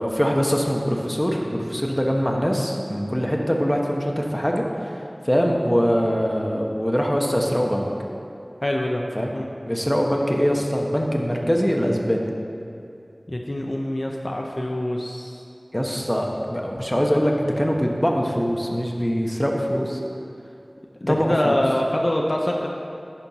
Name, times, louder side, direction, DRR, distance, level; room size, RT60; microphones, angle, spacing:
voice 1, 0.0-4.9 5.2-7.9 9.1-9.3 9.7-12.3 15.7-20.0 21.1-21.5, equal, 10° left, 0 dB, 1.0 m, -23 dB
voice 2, 8.6-9.0 9.3-9.5 13.3-15.4 21.0-22.7, left 1 dB, 50° left, 0 dB, 0.6 m, -24 dB
10.5 x 4.5 x 5.5 m, 2.5 s
wide cardioid pair, 45°, 0 cm